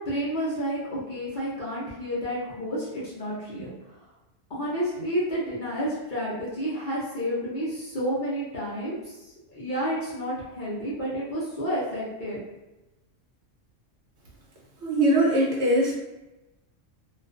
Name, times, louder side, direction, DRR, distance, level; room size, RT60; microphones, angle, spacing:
voice 1, 0.0-3.7 4.5-12.4, equal, 50° left, -8 dB, 0.6 m, -30 dB
voice 2, 14.8-15.9, right 1 dB, 65° right, -3 dB, 0.8 m, -21 dB
2.4 x 2.3 x 2.3 m, 1.0 s
omnidirectional pair, 1.4 m